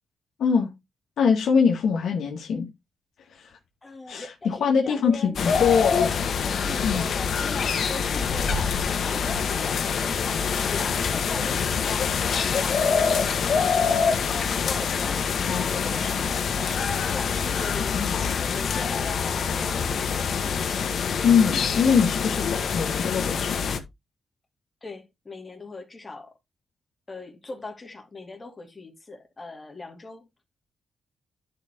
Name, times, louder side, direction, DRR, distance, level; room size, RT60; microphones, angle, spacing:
voice 1, 0.4-0.7 1.2-2.7 3.3-3.6 4.1-6.2 6.8-7.1 15.5-16.4 17.9-18.3 21.2-23.6, left 6 dB, 80° left, 1.8 m, -23 dB
voice 2, 3.8-5.4 5.8-6.3 6.6-14.0 14.3-16.2 16.6-20.3 24.8-26.3 27.1-30.3, left 3 dB, 25° left, 2.7 m, -40 dB
sound 1, 5.4-23.8, left 6 dB, 65° left, 1.6 m, -25 dB
10.5 x 5.3 x 3.6 m
cardioid pair, 105°, 0 cm